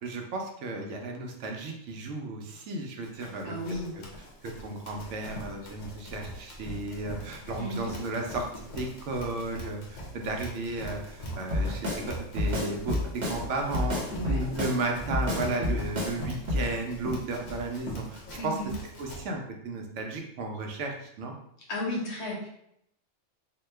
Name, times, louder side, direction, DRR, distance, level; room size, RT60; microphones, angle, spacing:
voice 1, 0.0-3.5 4.4-8.5 8.7-14.0 14.3-18.5 19.0-21.3, right 2 dB, 80° right, 2 dB, 0.9 m, -34 dB
Run, 3.0-19.2, right 1 dB, 50° left, 0.6 m, -41 dB
voice 2, 3.4-4.0 7.6-7.9 14.1-14.4 18.3-18.7 21.7-22.5, left 1 dB, 65° left, -3 dB, 1.2 m, -34 dB
Drum kit, 11.5-12.0 12.4-13.4 13.7-14.8 15.1-16.2 16.5-16.7, left 2 dB, 45° right, 0.7 m, -28 dB
2.9 x 2.3 x 3.2 m, 0.75 s
omnidirectional pair, 1.2 m